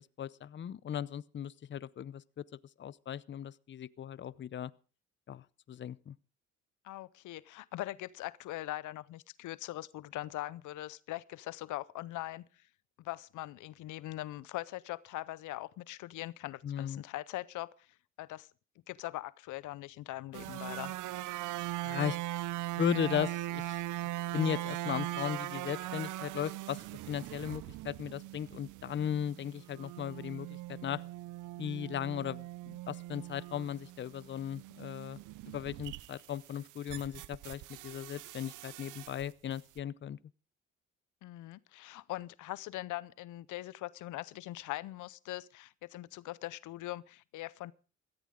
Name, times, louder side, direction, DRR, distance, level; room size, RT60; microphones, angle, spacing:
voice 1, 0.0-2.4 2.8-4.7 5.3-6.2 16.6-17.0 21.8-22.2 22.8-23.8 24.3-31.0 31.6-35.2 35.4-40.2, left 9 dB, 40° left, 0.6 m, -37 dB
voice 2, 6.8-12.6 13.0-17.9 18.2-18.5 18.9-20.9 41.2-47.7, left 16 dB, 80° left, 0.6 m, -41 dB
sound 1, 20.3-39.3 39.5-39.8, right 15 dB, 85° right, 0.6 m, -41 dB
17.0 x 14.5 x 3.7 m
cardioid pair, 90°, 30 cm